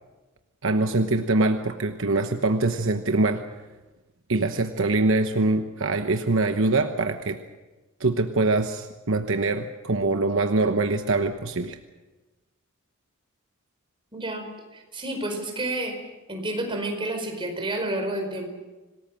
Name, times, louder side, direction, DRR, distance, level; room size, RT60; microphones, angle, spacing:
voice 1, 0.6-3.4 4.3-7.4 8.0-11.8, right 2 dB, 60° right, 6 dB, 1.1 m, -23 dB
voice 2, 14.1-16.0 16.3-18.5, right 1 dB, 25° right, 3 dB, 4.8 m, -30 dB
26.5 x 19.0 x 7.7 m, 1.2 s
head